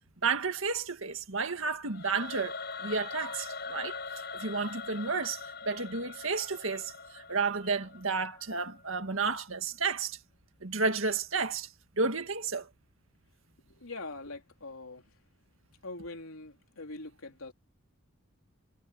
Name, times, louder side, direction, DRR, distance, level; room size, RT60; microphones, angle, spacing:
voice 1, 0.2-4.0 4.3-10.2 10.6-11.7 12.0-12.7, right 4 dB, 65° right, 2.0 m, -32 dB
Singing / Musical instrument, 1.9-9.0, left 4 dB, 50° left, 6.5 m, -42 dB
voice 2, 13.6-15.1 15.8-17.5, left 2 dB, 75° left, 3.7 m, -43 dB
head